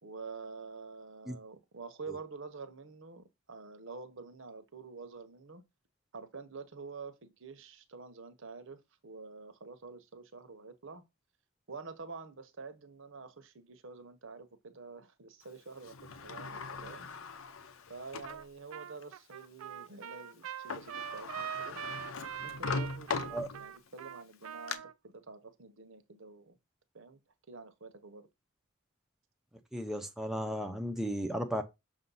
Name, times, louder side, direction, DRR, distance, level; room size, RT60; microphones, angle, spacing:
voice 1, 0.0-5.6 6.1-11.0 11.7-17.1 17.9-21.8 22.4-26.6 26.9-27.2 27.5-28.3, right 4 dB, 60° right, 0.9 m, -48 dB
Sliding door, 15.8-18.4 19.0-19.1 20.4-20.5 20.7-23.9 24.3-24.7, left 4 dB, 70° left, 0.7 m, -40 dB
Trumpet, 18.2-18.4 18.7-24.9, right 9 dB, 80° right, 0.4 m, -43 dB
voice 2, 29.7-31.6, equal, ahead, 0.6 m, -34 dB
6.6 x 2.7 x 5.4 m
head